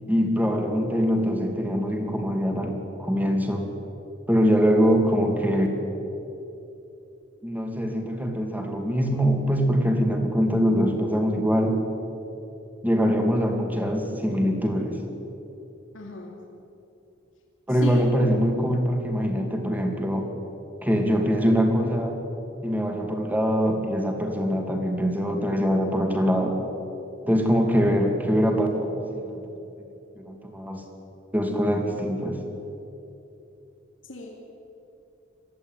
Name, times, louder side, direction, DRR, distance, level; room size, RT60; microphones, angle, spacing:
voice 1, 0.1-3.6 4.3-5.7 7.4-11.8 12.8-15.0 17.7-20.3 20.8-22.2 22.6-26.6 27.2-29.4 30.2-30.8 31.3-32.4, equal, 10° right, 3 dB, 2.7 m, -23 dB
voice 2, 15.9-16.3 17.8-18.1 34.1-34.6, left 1 dB, 85° left, -1 dB, 2.8 m, -34 dB
22.5 x 14.5 x 9.3 m, 2.9 s
head